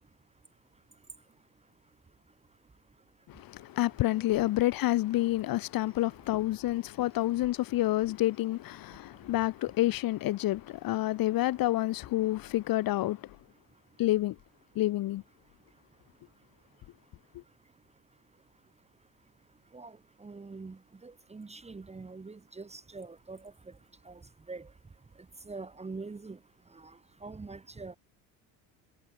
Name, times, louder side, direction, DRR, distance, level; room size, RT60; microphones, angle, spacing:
voice 1, 3.3-13.4 14.0-14.3 14.7-15.2, left 16 dB, 55° left, 1.6 m, -28 dB
voice 2, 19.7-23.5 24.1-24.2 24.5-24.7 25.5-26.4 26.7-26.9 27.2-28.0, right 3 dB, 15° right, 1.9 m, -44 dB
cardioid pair, 115°, 40 cm